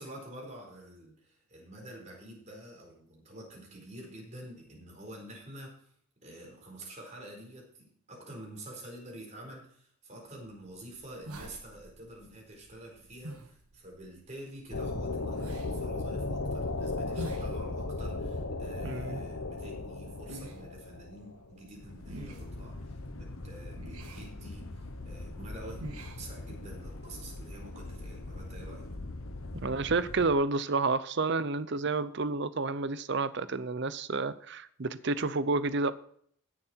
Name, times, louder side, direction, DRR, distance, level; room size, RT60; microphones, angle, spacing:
voice 1, 0.0-5.9 6.2-25.8 26.2-28.9, right 1 dB, 30° right, 4.4 m, -48 dB
sound 1, 10.4-27.0, right 1 dB, 90° right, 1.9 m, -50 dB
sound 2, 14.7-30.3, left 2 dB, 70° left, 1.2 m, -38 dB
voice 2, 18.8-19.2 29.5-35.9, right 3 dB, 50° right, 0.6 m, -30 dB
16.0 x 7.3 x 4.5 m
head